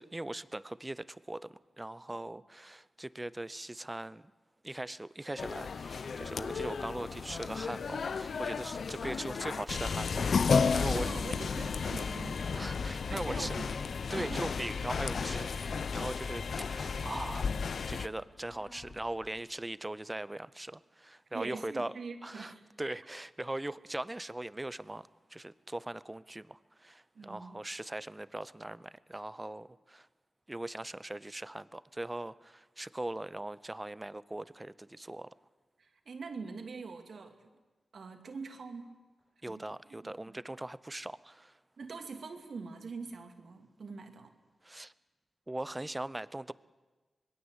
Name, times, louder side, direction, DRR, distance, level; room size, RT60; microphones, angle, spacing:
voice 1, 0.0-4.2 4.6-11.1 12.5-13.6 14.1-21.9 22.2-30.1 30.5-35.3 39.4-41.6 44.6-44.9 45.5-46.5, right 1 dB, 15° right, 17 dB, 0.7 m, -40 dB
sound 1, 5.4-18.1, left 5 dB, 70° left, 0.7 m, -33 dB
voice 2, 10.7-12.7 13.0-13.7 14.1-14.5 21.3-22.6 27.1-27.6 35.8-37.4 37.9-38.9 39.5-40.4 41.8-44.3, right 4 dB, 70° right, 5 dB, 2.6 m, -44 dB
sound 2, 17.5-19.4, left 3 dB, 50° left, 7.2 m, -61 dB
26.0 x 21.0 x 8.1 m, 1.2 s
wide cardioid pair, 80°, 0 cm